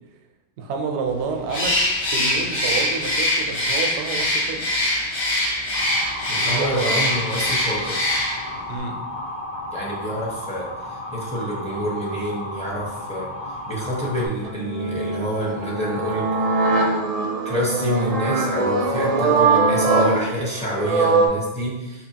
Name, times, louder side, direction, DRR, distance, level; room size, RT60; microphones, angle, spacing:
voice 1, 0.6-1.8 2.1-4.7 6.3-7.1 8.7-9.0, right 5 dB, 85° right, 3 dB, 0.9 m, -28 dB
Bird, 1.5-8.6, left 1 dB, 75° left, 1.3 m, -23 dB
Motor vehicle (road) / Siren, 5.7-14.3, left 1 dB, 45° left, 0.8 m, -33 dB
voice 2, 6.3-8.1 9.7-13.3 13.6-16.5 17.4-22.1, equal, 5° left, -4 dB, 0.7 m, -28 dB
sound 1, 14.4-21.3, right 3 dB, 45° right, 0.5 m, -21 dB
4.4 x 2.7 x 2.8 m, 1.1 s
omnidirectional pair, 1.1 m